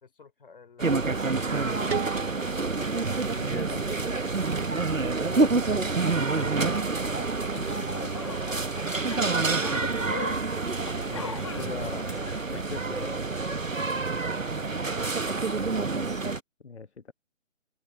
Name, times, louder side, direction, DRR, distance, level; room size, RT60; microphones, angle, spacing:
voice 1, 0.0-0.9 5.5-6.7 8.2-8.9 9.6-9.9 11.7-12.1 14.6-14.9, left 5 dB, 45° left, 3.1 m, -49 dB
sound 1, 0.8-16.4, right 3 dB, 90° right, 1.1 m, -28 dB
sound 2, 1.9-4.7, right 6 dB, 55° right, 0.7 m, -37 dB
voice 2, 3.3-4.1 5.3-5.7 7.6-8.1 11.1-12.0 12.5-13.2 16.6-17.1, left 4 dB, 60° left, 1.3 m, -40 dB
sound 3, 6.0-13.1, left 5 dB, 25° left, 1.0 m, -41 dB
open air
figure-of-eight pair, 150°, 38 cm